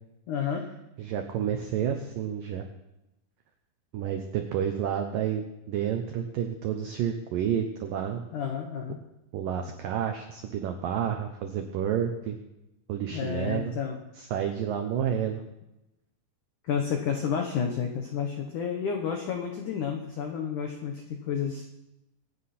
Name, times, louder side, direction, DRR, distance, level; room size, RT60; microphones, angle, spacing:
voice 1, 0.3-0.7 8.3-9.0 13.1-14.0 16.6-21.7, left 7 dB, 85° left, 3 dB, 1.7 m, -30 dB
voice 2, 1.0-2.6 3.9-8.2 9.3-12.4 12.9-13.7 14.2-15.4, right 9 dB, 85° right, 5 dB, 1.9 m, -30 dB
24.0 x 9.5 x 4.3 m, 0.92 s
omnidirectional pair, 5.4 m